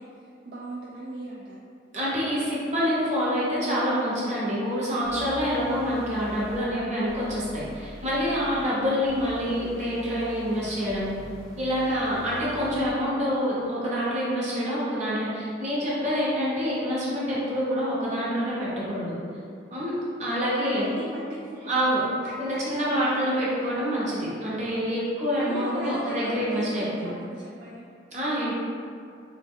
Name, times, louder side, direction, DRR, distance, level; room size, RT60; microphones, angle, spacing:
voice 1, 0.0-1.6 8.4-8.7 20.5-21.8 22.2-23.3 25.4-27.9, right 1 dB, 60° right, -5 dB, 0.3 m, -38 dB
voice 2, 1.9-11.1 11.6-19.2 19.7-20.9 21.6-22.0 22.4-27.1 28.1-28.5, equal, 40° right, -7 dB, 0.8 m, -27 dB
sound 1, 5.0-13.0, equal, 35° left, 0.8 m, -44 dB
3.1 x 2.1 x 3.5 m, 2.3 s
head